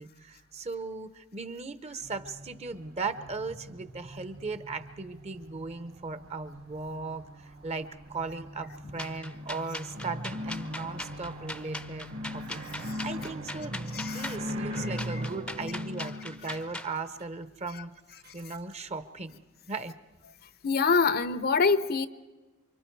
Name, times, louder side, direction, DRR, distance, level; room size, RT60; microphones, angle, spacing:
voice 1, 0.0-18.0 18.3-19.4 19.7-20.0, right 3 dB, 30° right, 0.8 m, -38 dB
sound 1, 2.0-15.1, right 2 dB, 75° right, 2.5 m, -46 dB
sound 2, 9.0-16.9, left 1 dB, 5° left, 0.6 m, -40 dB
sound 3, 9.3-9.6 9.9-11.6 12.1-17.2 18.2-18.3 18.7-18.8, left 1 dB, 50° right, 1.3 m, -38 dB
voice 2, 13.9-14.4 14.8-14.9 20.6-22.1, left 4 dB, 50° left, 0.7 m, -25 dB
28.5 x 24.5 x 4.6 m
head